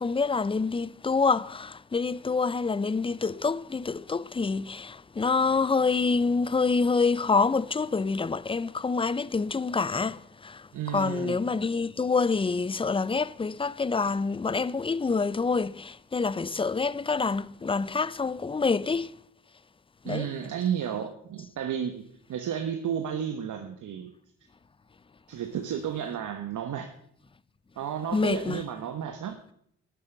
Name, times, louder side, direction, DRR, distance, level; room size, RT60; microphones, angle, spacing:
voice 1, 0.0-19.2 20.0-20.3 28.1-28.6, left 4 dB, 15° left, 0.5 m, -27 dB
voice 2, 10.7-11.4 20.0-22.0 22.3-24.1 25.3-26.9 27.8-29.4, right 8 dB, 65° right, 1.3 m, -32 dB
12.0 x 7.6 x 7.8 m
supercardioid pair, 65°, 33 cm